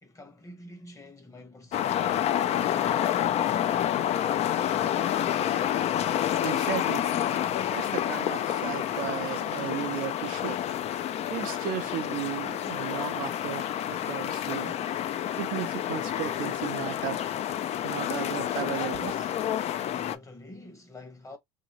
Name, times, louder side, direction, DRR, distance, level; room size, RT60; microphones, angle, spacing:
voice 1, 0.0-3.0 19.7-21.4, left 1 dB, 20° left, 1.0 m, -48 dB
sound 1, 1.7-20.2, left 11 dB, 45° left, 0.4 m, -29 dB
voice 2, 6.4-7.1 7.7-10.6 11.3-14.7 15.4-17.2 17.8-19.3, right 13 dB, 65° right, 0.5 m, -35 dB
2.8 x 2.6 x 2.9 m
supercardioid pair, 100°, 15 cm